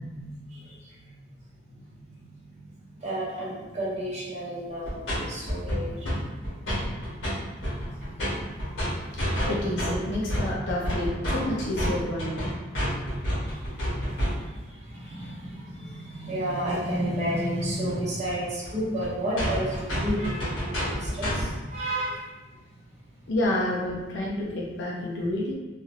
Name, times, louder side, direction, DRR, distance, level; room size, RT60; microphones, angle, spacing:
voice 1, 0.1-0.7 2.5-2.6 3.0-6.1 8.8-8.9 14.4-14.5 14.9-22.2, right 1 dB, 35° right, -7 dB, 0.9 m, -31 dB
sound 1, 4.8-5.2 5.5-6.2 6.4-7.3 7.6-14.6 17.9-18.0 18.3-18.4 18.6-18.7 19.0-19.1 19.4-21.5, equal, 85° left, 1.3 m, -29 dB
voice 2, 9.5-12.6 23.3-25.5, left 1 dB, 65° left, -4 dB, 0.5 m, -29 dB
3.1 x 2.4 x 3.0 m, 1.2 s
head